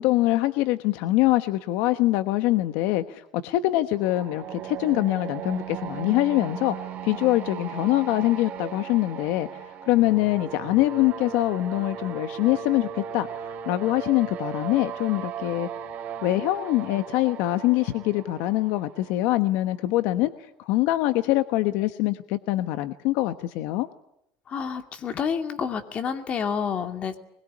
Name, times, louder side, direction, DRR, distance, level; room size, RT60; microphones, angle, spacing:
voice 1, 0.0-6.8 7.0-9.5 9.9-15.7 16.2-23.9, left 16 dB, 65° left, 11 dB, 1.2 m, -24 dB
sound 1, 3.9-19.8, right 8 dB, 40° right, 3.8 m, -37 dB
voice 2, 24.5-27.2, left 6 dB, 35° left, 7 dB, 2.6 m, -29 dB
23.5 x 22.0 x 9.7 m, 0.79 s
cardioid pair, 145°, 4 cm